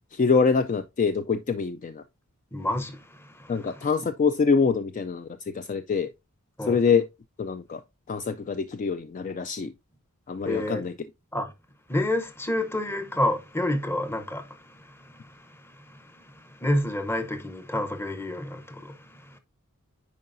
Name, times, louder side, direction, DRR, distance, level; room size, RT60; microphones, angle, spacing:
voice 1, 0.1-2.0 3.5-6.1 6.6-7.1 7.4-7.8 8.1-9.7 10.3-10.9, left 5 dB, 35° left, 0.3 m, -25 dB
voice 2, 2.5-3.9 6.6-6.8 10.5-10.8 11.3-11.5 11.9-19.4, left 1 dB, 10° left, 0.7 m, -30 dB
9.4 x 4.7 x 2.5 m
head